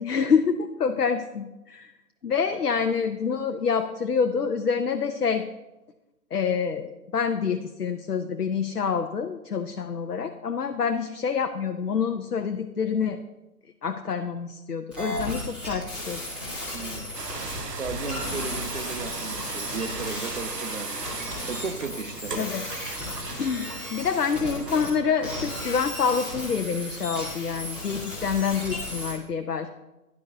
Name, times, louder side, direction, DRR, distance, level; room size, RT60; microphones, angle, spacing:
voice 1, 0.0-1.9 2.2-5.4 6.3-13.2 13.8-16.2 22.4-22.7 23.4-29.7, left 6 dB, 70° left, 7 dB, 0.7 m, -27 dB
sound 1, 14.9-24.9 25.2-29.1, left 1 dB, ahead, 1.8 m, -35 dB
voice 2, 16.7-17.1 17.7-22.3, right 5 dB, 55° right, 8 dB, 0.6 m, -36 dB
sound 2, 17.1-26.6, right 4 dB, 85° right, 0.9 m, -38 dB
10.5 x 9.3 x 2.7 m, 1.0 s
figure-of-eight pair, 140°, 47 cm